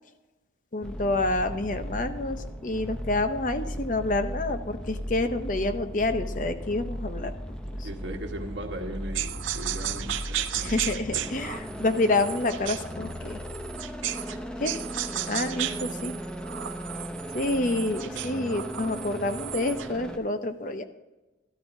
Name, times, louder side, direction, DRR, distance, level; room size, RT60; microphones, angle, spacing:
voice 1, 0.7-7.3 7.8-7.9 10.6-13.4 14.6-14.8 15.3-16.2 17.3-20.8, left 2 dB, 40° left, 9 dB, 0.6 m, -28 dB
sound 1, 0.8-20.2, equal, 5° left, 0.6 m, -37 dB
voice 2, 7.8-10.7, right 1 dB, 70° right, 3 dB, 1.4 m, -38 dB
sound 2, 9.1-14.4 14.6-20.0, right 11 dB, 85° right, 0.6 m, -34 dB
13.0 x 12.5 x 2.6 m, 1.1 s
head